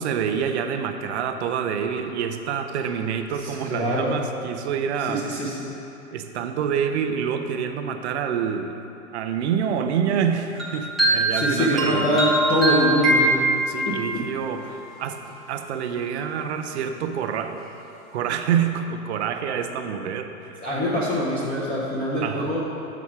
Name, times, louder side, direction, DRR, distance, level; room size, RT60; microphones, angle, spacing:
voice 1, 0.0-5.3 6.1-8.7 9.1-12.2 13.7-15.2 15.5-17.6 18.1-20.5 22.2-22.5, right 7 dB, 50° right, 7 dB, 0.6 m, -27 dB
voice 2, 3.4-4.2 5.0-5.8 11.3-13.5 13.9-14.2 20.6-22.6, equal, 20° left, -7 dB, 0.7 m, -24 dB
sound 1, 10.6-14.1, right 2 dB, ahead, 1.1 m, -22 dB
7.2 x 6.0 x 4.7 m, 2.9 s
hypercardioid pair, 140°, 43 cm